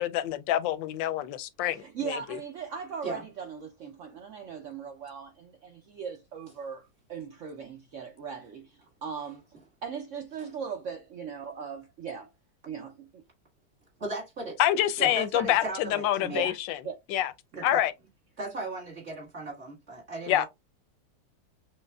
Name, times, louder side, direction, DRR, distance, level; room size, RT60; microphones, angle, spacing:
voice 1, 0.0-2.4 14.6-16.8 17.1-17.3 17.6-17.9 20.3-20.5, left 12 dB, 85° left, 1.3 m, -27 dB
voice 2, 1.7-9.4 9.8-12.3 12.7-13.2 16.3-16.6 16.8-17.0 17.5-17.6, right 6 dB, 75° right, 0.7 m, -39 dB
voice 3, 14.0-14.6 15.0-16.5 17.5-17.8 18.4-20.5, right 2 dB, 40° right, 1.8 m, -36 dB
6.3 x 2.3 x 2.2 m
omnidirectional pair, 2.0 m